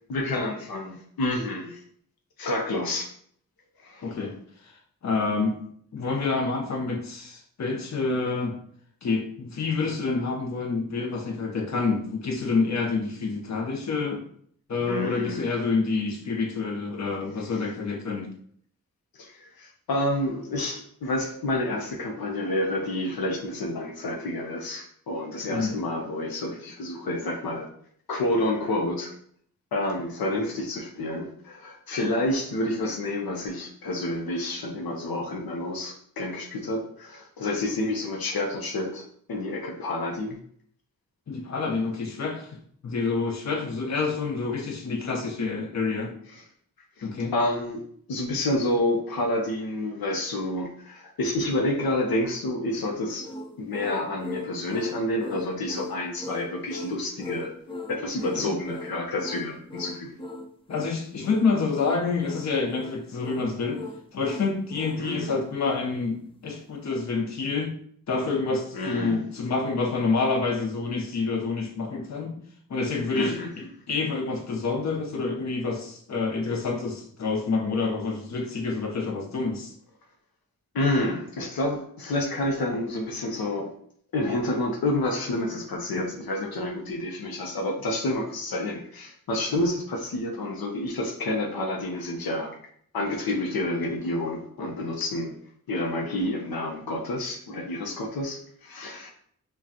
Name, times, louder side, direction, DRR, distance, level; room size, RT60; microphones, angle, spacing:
voice 1, 0.1-1.8 2.4-3.1 3.8-4.1 14.8-15.5 19.2-27.7 28.1-29.1 29.7-40.4 47.0-47.8 48.1-53.2 53.6-57.5 57.9-60.2 65.0-65.3 68.7-69.3 73.1-73.5 80.7-83.7 84.1-92.6 92.9-95.3 95.7-99.1, left 1 dB, 80° left, 1 dB, 0.7 m, -29 dB
voice 2, 4.0-4.4 4.6-4.8 5.0-5.6 5.9-8.6 9.0-14.2 14.7-18.3 25.5-25.7 41.3-46.1 47.0-47.3 58.2-58.5 60.7-63.8 64.1-67.7 68.1-72.4 72.7-79.7, left 4 dB, 50° left, 2 dB, 0.7 m, -28 dB
sound 1, 53.2-65.1, left 1 dB, 15° left, 0.4 m, -39 dB
5.0 x 2.3 x 2.8 m, 0.62 s
wide cardioid pair, 75°, 35 cm